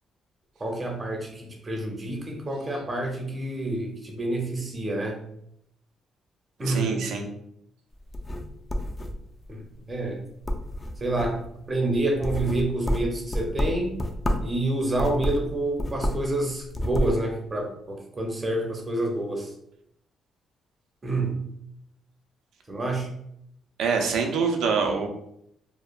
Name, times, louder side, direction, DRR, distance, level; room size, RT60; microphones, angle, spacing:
voice 1, 0.6-5.2 6.6-6.9 9.5-9.6 9.9-10.2 11.0-14.0 14.4-19.5 21.0-21.4 22.7-23.1, right 2 dB, 30° right, 1 dB, 0.6 m, -28 dB
voice 2, 6.7-7.2 23.8-25.1, right 5 dB, 80° right, 3 dB, 0.4 m, -25 dB
sound 1, 8.0-9.5 9.9-10.2 10.4-11.5 11.9-14.6 14.9-16.3 16.6-17.2, left 1 dB, 25° left, 0.3 m, -29 dB
2.8 x 2.1 x 2.4 m, 0.75 s
cardioid pair, 90°, 0 cm